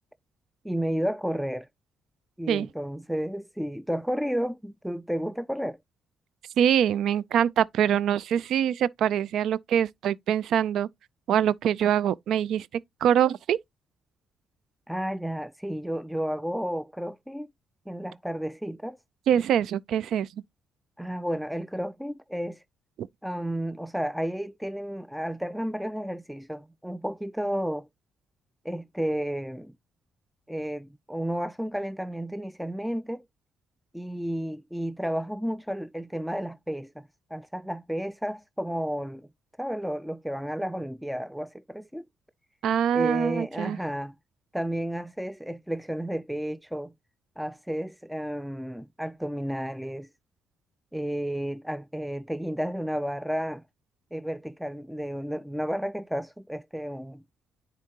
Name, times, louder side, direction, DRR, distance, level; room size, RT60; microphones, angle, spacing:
voice 1, 0.6-1.7 2.4-5.8 14.9-17.5 17.9-19.0 21.0-22.6 23.2-27.9 28.6-29.7 30.5-33.2 33.9-39.3 39.6-42.0 42.9-44.1 44.5-46.9 47.4-50.1 50.9-53.6 54.1-57.2, equal, ahead, 0.3 m, -32 dB
voice 2, 6.6-10.9 11.3-12.7 13.0-13.6 19.3-20.3 23.0-23.1 42.6-43.8, right 9 dB, 75° right, 0.3 m, -24 dB
9.8 x 3.8 x 2.8 m
cardioid pair, 90°, 0 cm